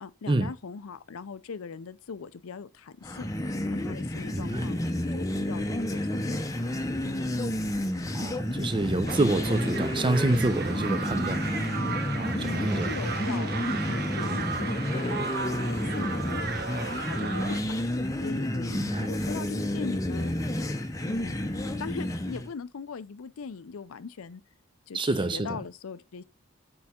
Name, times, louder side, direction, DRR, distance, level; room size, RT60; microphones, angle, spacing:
voice 1, 0.0-3.3 3.7-4.8 5.1-7.3 12.4-15.3 15.6-16.5 17.0-17.8 18.2-20.3 21.0-21.3 21.8-24.4 24.9-26.2, left 5 dB, 90° left, 0.5 m, -40 dB
sound 1, 3.0-22.5, left 1 dB, 15° left, 0.6 m, -30 dB
voice 2, 4.3-4.7 8.1-11.5 12.2-12.9 18.7-19.1 24.9-25.6, right 2 dB, 25° right, 0.5 m, -28 dB
sound 2, 9.1-17.6, right 4 dB, 50° right, 0.8 m, -35 dB
6.5 x 4.7 x 4.3 m
head